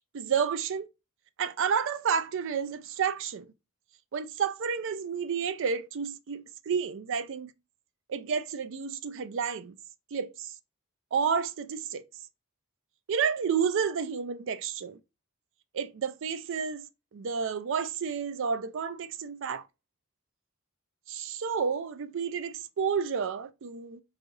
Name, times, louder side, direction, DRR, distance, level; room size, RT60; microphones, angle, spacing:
voice 1, 0.1-0.9 1.4-3.4 4.1-7.5 8.1-9.7 10.1-10.5 11.1-12.0 13.1-15.0 15.7-16.9 17.1-19.6 21.1-24.0, right 6 dB, 60° right, 0.4 m, -30 dB
4.6 x 3.3 x 2.5 m
head